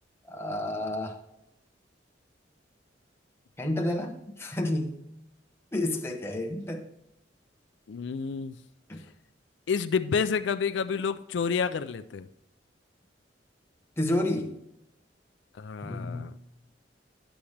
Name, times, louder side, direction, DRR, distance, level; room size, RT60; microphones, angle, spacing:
voice 1, 0.3-1.2 3.6-5.0 5.7-6.8 8.9-9.0 14.0-14.6 15.8-16.3, left 1 dB, 15° left, 2 dB, 1.0 m, -30 dB
voice 2, 7.9-8.6 9.7-12.3 15.6-16.3, left 6 dB, 70° left, 11 dB, 0.4 m, -29 dB
10.0 x 7.0 x 3.2 m, 0.83 s
head